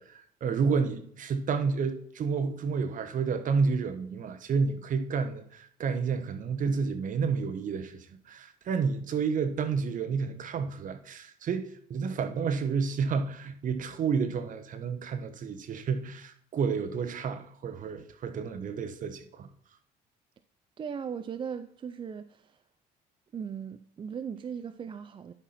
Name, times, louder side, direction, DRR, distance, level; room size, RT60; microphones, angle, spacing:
voice 1, 0.0-19.5, right 5 dB, 50° right, 1.1 m, -30 dB
voice 2, 20.8-22.6 23.3-25.3, right 7 dB, 30° right, 0.4 m, -38 dB
11.0 x 5.8 x 4.2 m
cardioid pair, 110°, 17 cm